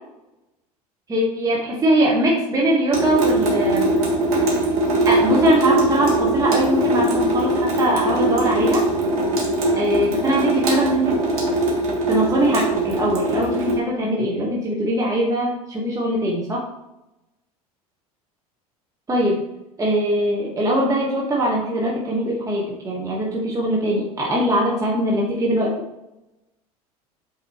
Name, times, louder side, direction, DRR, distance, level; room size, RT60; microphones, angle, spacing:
voice 1, 1.1-3.9 5.0-8.8 9.7-11.2 12.1-16.7 19.1-19.4 19.8-25.7, right 1 dB, 15° right, -3 dB, 1.6 m, -21 dB
Water tap faucet / Sink (filling or washing) / Drip, 2.9-13.7, right 1 dB, 65° right, 1.9 m, -21 dB
8.1 x 4.7 x 3.2 m, 0.90 s
figure-of-eight pair, 75°, 19 cm